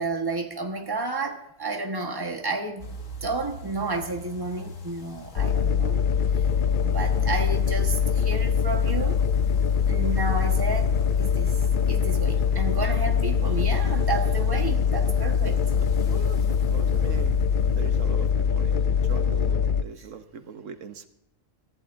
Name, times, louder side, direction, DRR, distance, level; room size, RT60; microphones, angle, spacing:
voice 1, 0.0-2.9 3.2-6.0 6.8-9.2 9.9-11.6 11.9-15.6, right 3 dB, 20° right, 1.4 m, -31 dB
sound 1, 2.8-19.5, equal, 85° left, 1.7 m, -41 dB
sound 2, 5.4-19.8, left 7 dB, 55° left, 0.6 m, -23 dB
voice 2, 16.1-17.4 17.8-21.1, right 6 dB, 80° right, 1.3 m, -41 dB
23.0 x 14.5 x 2.6 m
omnidirectional pair, 1.3 m